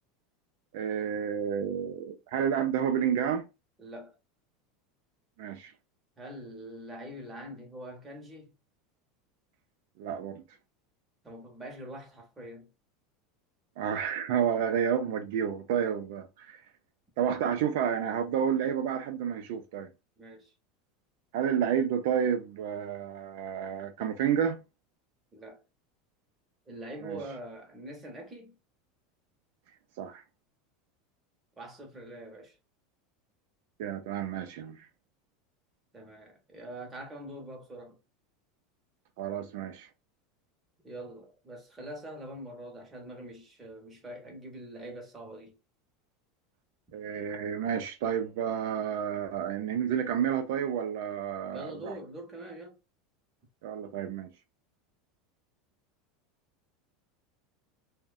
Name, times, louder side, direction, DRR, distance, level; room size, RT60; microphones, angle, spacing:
voice 1, 0.7-3.5 5.4-5.7 10.0-10.4 13.8-16.6 17.2-19.9 21.3-24.6 27.0-27.2 30.0-30.2 33.8-34.9 39.2-39.9 46.9-51.9 53.6-54.3, right 8 dB, 65° right, 0.4 m, -30 dB
voice 2, 3.8-4.2 6.2-8.5 11.2-12.7 20.2-20.5 25.3-25.6 26.7-28.6 31.6-32.6 35.9-38.0 40.8-45.6 51.5-52.8, right 1 dB, 10° right, 0.7 m, -44 dB
2.5 x 2.1 x 2.3 m
supercardioid pair, 165°, 0 cm